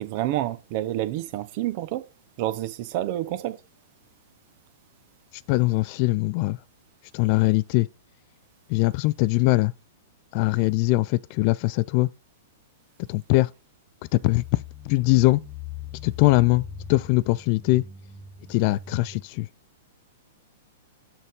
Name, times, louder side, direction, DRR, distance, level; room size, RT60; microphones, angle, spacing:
voice 1, 0.0-2.0 2.4-3.6, right 14 dB, 40° right, 0.8 m, -28 dB
voice 2, 5.5-6.6 7.1-7.9 8.7-9.7 10.3-12.1 13.1-13.5 14.1-15.4 16.0-16.6 16.9-17.8 18.5-19.5, left 21 dB, 40° left, 0.3 m, -21 dB
sound 1, 14.2-19.2, left 6 dB, ahead, 1.7 m, -41 dB
7.3 x 5.3 x 3.8 m
figure-of-eight pair, 105°, 0 cm